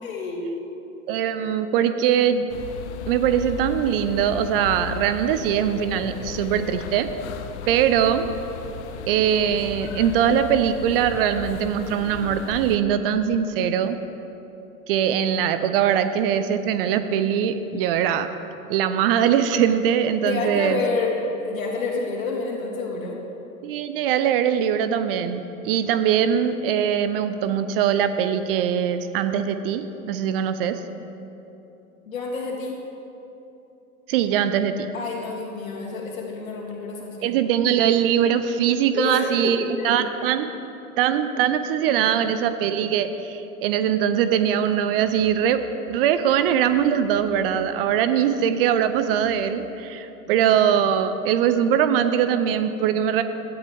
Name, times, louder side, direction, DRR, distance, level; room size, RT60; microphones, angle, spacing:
voice 1, 0.0-0.5 20.2-23.2 32.1-32.8 34.9-37.4 38.9-39.9, left 3 dB, 65° left, -1 dB, 2.9 m, -28 dB
voice 2, 1.1-2.5 3.1-7.1 7.7-8.3 9.1-14.0 14.9-18.3 18.7-20.8 23.6-30.8 34.1-34.9 37.2-40.5 41.0-45.6 45.9-53.2, right 9 dB, 40° right, 11 dB, 0.7 m, -22 dB
sound 1, 2.5-12.8, left 7 dB, 50° left, 0.9 m, -36 dB
16.5 x 13.0 x 3.5 m, 2.9 s
figure-of-eight pair, 95°, 43 cm